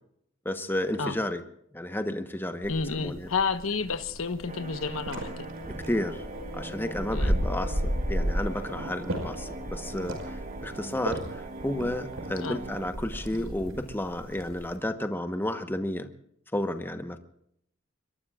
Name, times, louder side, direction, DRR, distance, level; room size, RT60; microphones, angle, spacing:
voice 1, 0.4-1.4 1.7-3.3 5.7-6.2 6.5-16.1 16.5-17.2, left 1 dB, 10° left, 8 dB, 1.0 m, -32 dB
sound 1, 2.6-14.8, equal, 85° right, 5.3 m, -34 dB
voice 2, 2.7-5.5 7.1-7.3 12.4-12.6, left 5 dB, 90° left, 9 dB, 1.1 m, -30 dB
sound 2, 4.2-9.8, left 2 dB, 50° left, 5.3 m, -46 dB
sound 3, 4.5-12.9, right 2 dB, 40° right, 1.2 m, -41 dB
26.0 x 22.5 x 2.4 m, 0.74 s
head